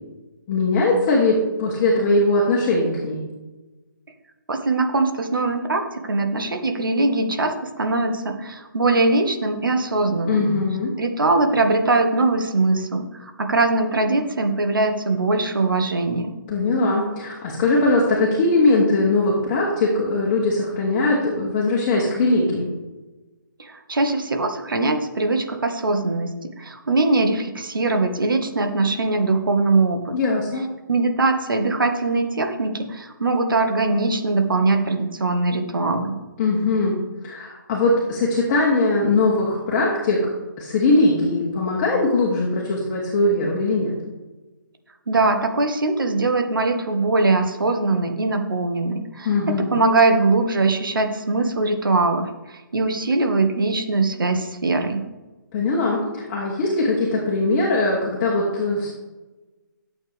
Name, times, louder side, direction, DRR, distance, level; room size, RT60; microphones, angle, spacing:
voice 1, 0.5-3.2 10.2-10.9 16.5-22.7 30.1-30.6 36.4-36.9 37.2-40.2 40.6-43.9 49.2-49.7 55.5-58.9, left 2 dB, 30° left, -4 dB, 2.8 m, -20 dB
voice 2, 4.5-10.5 11.0-16.3 23.6-30.2 30.9-36.2 45.1-55.0, right 3 dB, 80° right, 5 dB, 1.8 m, -21 dB
14.0 x 8.3 x 3.6 m, 1.1 s
hypercardioid pair, 150°, 11 cm